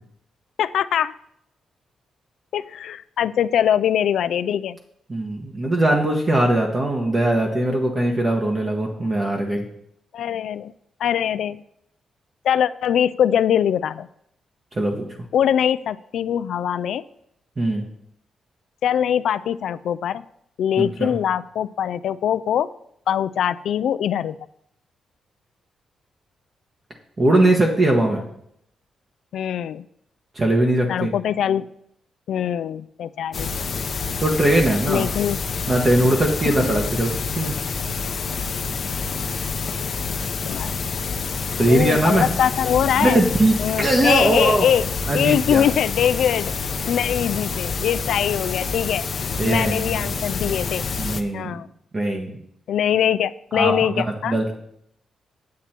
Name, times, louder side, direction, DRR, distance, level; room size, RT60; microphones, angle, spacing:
voice 1, 0.6-1.1 2.5-4.8 9.1-9.3 10.1-10.7 11.0-11.6 12.4-14.1 15.3-17.0 18.8-20.2 20.6-22.7 23.1-24.3 29.3-29.8 30.9-31.7 32.3-33.5 34.9-35.4 36.5-36.6 40.0-40.7 41.7-43.2 43.6-44.9 45.1-46.5 46.9-49.1 49.4-50.8 51.3-51.7 52.7-54.4, left 9 dB, 75° left, 14 dB, 0.3 m, -22 dB
voice 2, 5.1-9.6 14.7-15.1 17.6-17.8 20.8-21.1 27.2-28.2 30.3-31.1 34.2-35.1 35.7-37.5 41.6-42.3 43.0-44.7 45.1-45.6 49.4-50.1 51.0-51.6 51.9-52.3 53.5-54.5, right 1 dB, 30° right, 1 dB, 1.2 m, -20 dB
sound 1, 33.3-51.2, left 5 dB, 45° left, 0.8 m, -27 dB
8.4 x 8.3 x 4.4 m, 0.72 s
cardioid pair, 135°, 0 cm